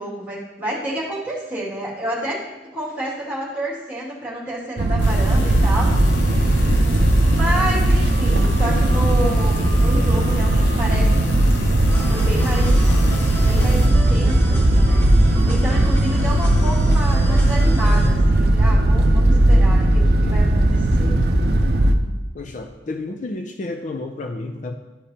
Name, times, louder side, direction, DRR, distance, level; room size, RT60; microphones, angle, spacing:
voice 1, 0.0-2.4 2.7-5.9 6.2-11.4 11.6-12.8 13.4-21.1, right 1 dB, 10° right, -7 dB, 2.3 m, -30 dB
sound 1, 4.8-21.9, right 1 dB, 60° right, 0.6 m, -17 dB
sound 2, 5.0-13.9, equal, 80° left, 0.8 m, -29 dB
sound 3, 11.9-18.1, equal, 15° left, 1.1 m, -30 dB
voice 2, 22.3-24.8, left 2 dB, 45° left, 5 dB, 0.4 m, -31 dB
12.5 x 5.1 x 2.8 m, 1.2 s
head